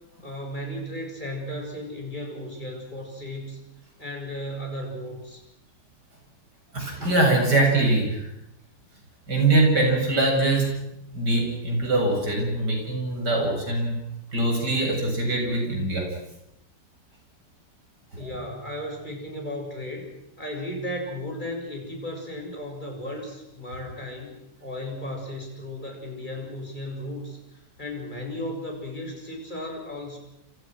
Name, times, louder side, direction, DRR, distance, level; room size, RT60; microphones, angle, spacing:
voice 1, 0.2-3.6 4.0-5.4 18.2-20.1 20.4-27.4 27.8-30.2, left 1 dB, 25° left, 1 dB, 7.5 m, -35 dB
voice 2, 6.7-8.3 9.3-10.8 11.1-14.0 14.3-16.1, right 2 dB, 65° right, 1 dB, 8.6 m, -23 dB
28.5 x 28.5 x 6.3 m, 0.83 s
omnidirectional pair, 1.9 m